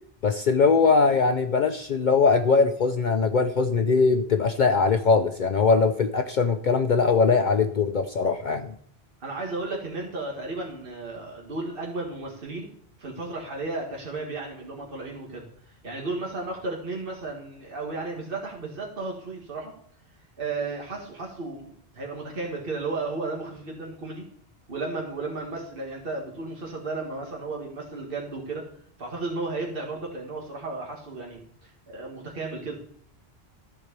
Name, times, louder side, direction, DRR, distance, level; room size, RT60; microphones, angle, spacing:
voice 1, 0.2-8.7, left 4 dB, 55° left, 7 dB, 0.7 m, -21 dB
voice 2, 9.2-12.7 13.0-19.7 20.4-24.2 24.7-28.6 29.0-32.8, right 3 dB, 60° right, -2 dB, 1.9 m, -34 dB
14.0 x 4.8 x 6.7 m, 0.66 s
omnidirectional pair, 1.0 m